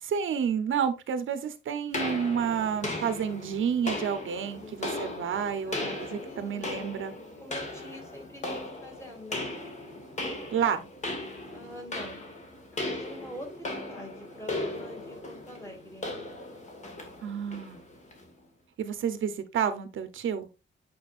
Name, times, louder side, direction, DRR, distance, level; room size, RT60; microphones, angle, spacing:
voice 1, 0.0-7.1 10.5-10.8 17.2-17.8 18.8-20.5, right 7 dB, 80° right, 0.9 m, -30 dB
sound 1, 1.9-18.3, left 2 dB, 35° left, 2.0 m, -37 dB
voice 2, 5.6-6.6 7.4-9.5 11.5-12.2 12.7-16.1, equal, 15° left, 2.4 m, -45 dB
8.6 x 5.5 x 2.5 m
wide cardioid pair, 170°, 20 cm